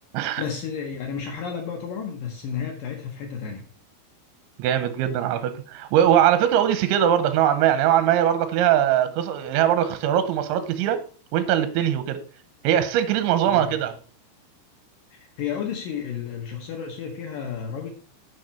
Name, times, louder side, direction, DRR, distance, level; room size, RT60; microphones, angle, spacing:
voice 1, 0.4-3.6 13.5-13.7 15.1-17.9, left 7 dB, 80° left, 1.9 m, -32 dB
voice 2, 4.6-11.0 11.3-12.2 12.6-13.9, right 10 dB, 80° right, 3.1 m, -21 dB
9.2 x 6.2 x 4.3 m
omnidirectional pair, 5.5 m